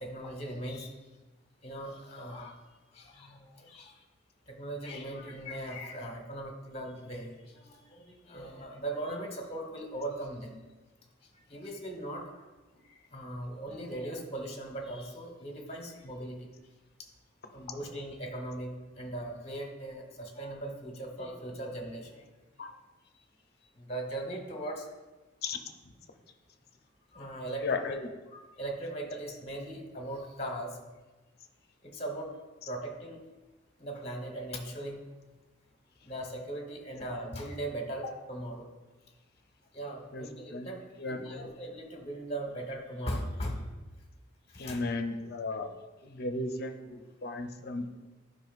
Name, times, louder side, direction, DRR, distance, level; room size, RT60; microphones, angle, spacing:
voice 1, 0.0-0.9 1.6-2.5 2.9-3.9 4.5-10.5 11.5-12.2 13.1-16.4 17.5-18.7 19.0-22.2 23.8-24.8 27.1-27.9 28.3-30.7 31.8-32.3 32.7-33.2 33.8-35.0 36.0-38.6 39.7-40.8 41.1-43.6 44.6-44.9, right 1 dB, 30° left, 2 dB, 1.1 m, -39 dB
voice 2, 27.6-28.1 40.1-40.3 40.5-40.7 41.0-41.5 44.6-45.7 46.0-48.0, left 3 dB, 50° left, 6 dB, 0.6 m, -35 dB
11.0 x 5.3 x 2.4 m, 1.2 s
head